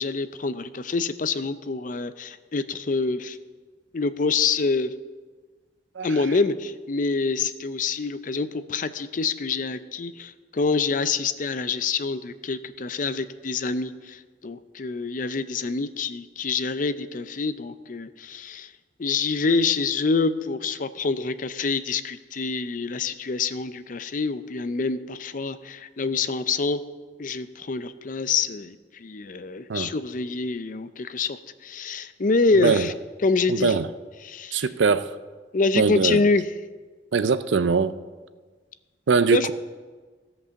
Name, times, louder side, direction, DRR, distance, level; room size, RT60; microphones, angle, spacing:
voice 1, 0.0-3.4 3.9-4.9 6.0-18.7 19.0-26.8 27.2-28.8 29.0-31.4 31.6-32.9 33.2-33.7 34.2-34.6 35.5-36.5 39.3-39.5, left 4 dB, 45° left, 12 dB, 0.5 m, -26 dB
voice 2, 32.5-32.9 33.5-33.9 34.5-35.1 35.8-36.2 37.1-37.9 39.1-39.5, right 5 dB, 90° right, 13 dB, 0.5 m, -21 dB
16.0 x 5.4 x 7.0 m, 1.4 s
head